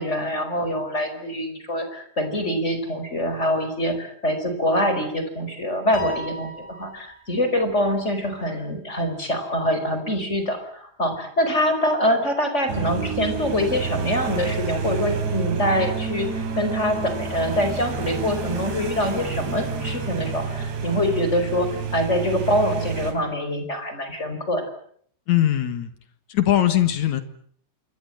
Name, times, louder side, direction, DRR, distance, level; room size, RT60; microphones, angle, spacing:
voice 1, 0.0-24.6, equal, 15° left, 7 dB, 4.9 m, -24 dB
Piano, 5.9-7.5, left 2 dB, 70° left, 10.0 m, -36 dB
sound 1, 12.7-23.1, right 5 dB, 65° right, 5.7 m, -29 dB
voice 2, 25.3-25.9 26.3-27.2, left 12 dB, 55° left, 11 dB, 2.1 m, -20 dB
27.5 x 24.0 x 7.8 m, 0.62 s
omnidirectional pair, 5.5 m